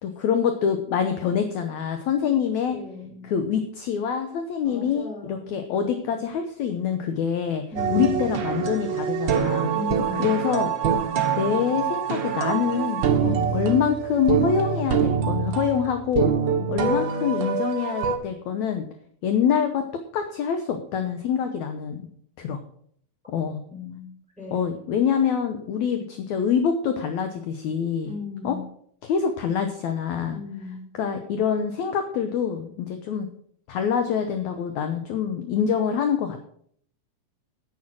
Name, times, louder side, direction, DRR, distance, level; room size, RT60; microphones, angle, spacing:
voice 1, 0.0-2.8 3.2-7.6 7.9-9.7 10.2-10.7 11.4-16.3 16.7-18.9 19.2-19.9 20.1-22.1 22.4-22.6 23.3-23.6 24.5-28.1 28.4-28.6 29.0-30.4 30.9-33.3 33.7-36.5, left 7 dB, 70° left, 7 dB, 1.9 m, -25 dB
voice 2, 2.7-3.2 4.6-5.7 7.7-8.2 9.6-10.3 13.2-13.5 16.5-16.9 23.7-24.1 24.4-24.7 28.0-28.6 30.2-30.8, left 4 dB, ahead, -2 dB, 6.1 m, -36 dB
sound 1, 7.8-18.2, right 7 dB, 65° right, 1.1 m, -25 dB
10.0 x 8.8 x 6.3 m, 0.63 s
omnidirectional pair, 4.0 m